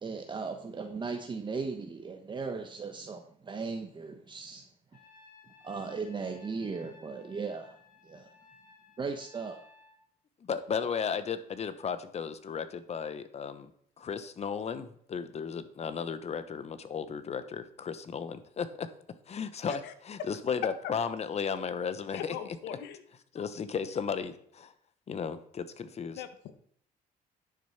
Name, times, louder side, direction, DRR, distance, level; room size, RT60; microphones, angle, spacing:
voice 1, 0.0-4.7 5.6-7.7 8.0-8.3 9.0-9.6, right 4 dB, 30° right, 5 dB, 1.1 m, -37 dB
Trumpet, 4.9-10.0, left 4 dB, 55° left, 2.9 m, -58 dB
voice 2, 10.4-13.7 14.0-18.9 19.3-22.4 23.3-24.7 25.1-26.2, left 6 dB, 40° left, 12 dB, 1.0 m, -35 dB
voice 3, 22.1-23.0 26.1-26.5, left 9 dB, 85° left, 10 dB, 1.3 m, -40 dB
10.5 x 6.5 x 5.8 m, 0.63 s
cardioid pair, 110°, 17 cm